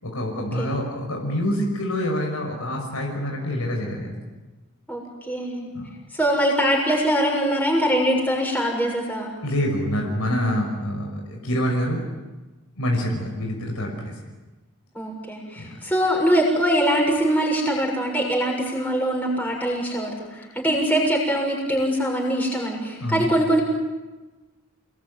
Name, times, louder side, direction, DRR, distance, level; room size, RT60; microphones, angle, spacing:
voice 1, 0.0-4.1 5.7-5.9 9.4-12.0 12.8-14.2 15.6-15.8 23.0-23.3, equal, 85° left, 0 dB, 5.9 m, -26 dB
voice 2, 5.3-5.7 6.1-9.4 15.0-23.6, equal, 5° left, -2 dB, 6.9 m, -23 dB
30.0 x 20.5 x 9.6 m, 1.2 s
head